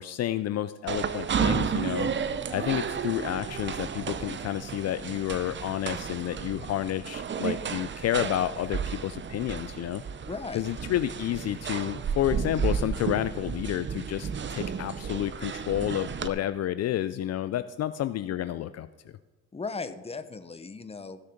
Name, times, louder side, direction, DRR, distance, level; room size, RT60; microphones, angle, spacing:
voice 1, 0.0-2.1 2.5-10.0 10.5-18.9, left 12 dB, 55° left, 13 dB, 0.4 m, -30 dB
sound 1, 0.9-16.3, right 6 dB, 40° right, 0.7 m, -32 dB
voice 2, 10.3-10.6 19.5-21.2, left 4 dB, 20° left, 11 dB, 0.8 m, -37 dB
15.5 x 6.5 x 5.1 m, 1.3 s
cardioid pair, 90°, 30 cm